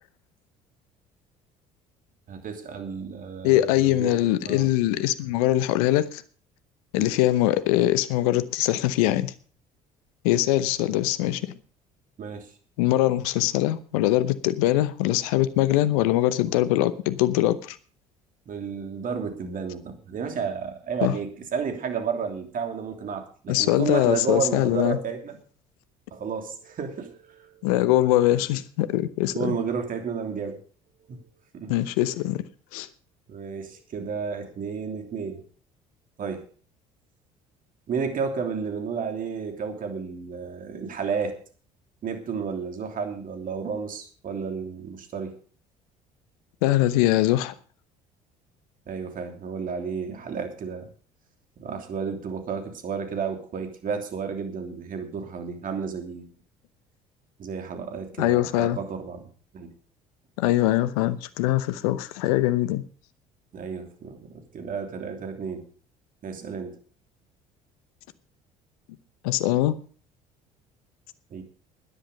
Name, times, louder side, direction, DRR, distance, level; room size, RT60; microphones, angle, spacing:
voice 1, 2.3-4.2 4.4-4.7 7.0-7.1 12.2-12.5 18.5-25.4 26.1-27.7 29.3-30.6 31.1-31.3 31.5-31.7 33.3-35.4 36.2-36.5 37.9-41.3 42.0-45.3 48.9-50.9 51.6-56.3 57.4-59.7 63.5-65.7 66.2-66.8 71.3-71.4, right 6 dB, 50° right, 3.1 m, -32 dB
voice 2, 3.4-6.2 6.9-9.3 10.2-11.5 12.8-17.8 21.0-21.1 23.5-25.0 27.6-29.6 31.7-32.4 32.7-32.9 46.6-47.5 58.2-58.8 60.4-62.8 69.2-69.8, left 15 dB, 75° left, 0.8 m, -22 dB
13.5 x 10.0 x 5.3 m
hypercardioid pair, 60°, 19 cm